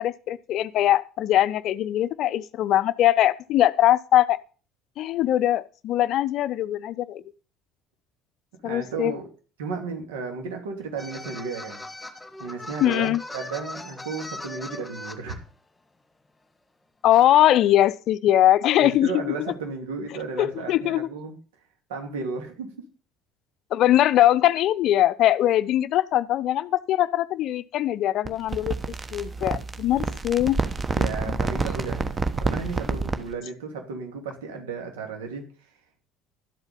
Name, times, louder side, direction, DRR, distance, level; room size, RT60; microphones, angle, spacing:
voice 1, 0.0-4.4 5.0-7.2 8.6-9.1 12.8-13.2 17.0-19.3 20.4-21.1 23.7-28.8 29.1-30.6 31.0-31.3, left 13 dB, 50° left, 0.5 m, -21 dB
voice 2, 8.6-9.3 9.6-11.9 12.4-15.4 18.8-21.4 21.9-22.7 30.9-32.1 32.4-35.5, right 4 dB, 70° right, 2.7 m, -34 dB
sound 1, 11.0-15.4, left 2 dB, 15° left, 1.5 m, -39 dB
sound 2, 28.2-33.3, right 4 dB, 25° right, 1.2 m, -28 dB
12.5 x 8.0 x 5.5 m
figure-of-eight pair, 60°, 0 cm